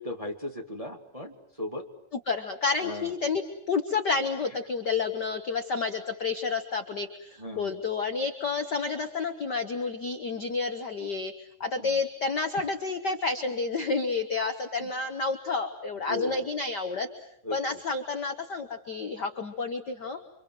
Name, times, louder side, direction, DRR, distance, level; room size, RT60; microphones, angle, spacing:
voice 1, 0.0-1.8 2.8-3.1 7.4-7.7 11.8-11.9 14.8-14.9 16.1-16.4 17.4-17.6, left 1 dB, 15° right, 2 dB, 1.9 m, -36 dB
voice 2, 2.3-11.3 11.6-17.1 17.5-20.2, left 4 dB, 50° left, 7 dB, 1.4 m, -30 dB
29.0 x 25.5 x 7.8 m, 0.72 s
omnidirectional pair, 3.5 m